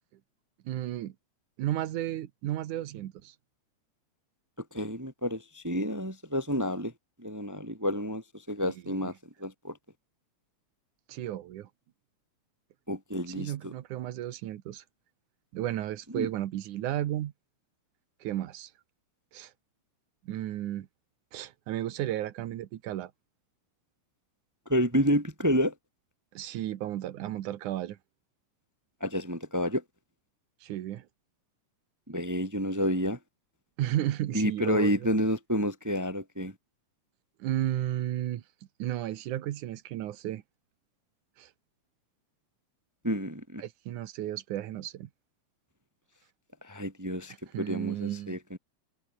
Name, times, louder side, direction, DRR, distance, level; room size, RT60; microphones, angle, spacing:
voice 1, 0.7-1.1 1.6-3.3 8.9-9.1 11.1-11.7 13.4-14.8 15.5-17.3 18.2-18.7 19.3-19.5 20.2-20.9 21.3-23.1 26.3-28.0 30.6-31.1 33.8-35.1 37.4-38.4 38.8-40.4 41.4-41.5 43.6-45.1 47.5-48.4, right 13 dB, 90° right, 2.7 m, -33 dB
voice 2, 4.7-6.9 7.2-9.1 9.4-9.8 12.9-13.7 16.1-16.3 24.7-25.7 29.0-29.8 32.1-33.2 34.3-36.5 43.0-43.6 46.6-48.6, equal, 15° right, 0.7 m, -29 dB
omnidirectional pair, 3.4 m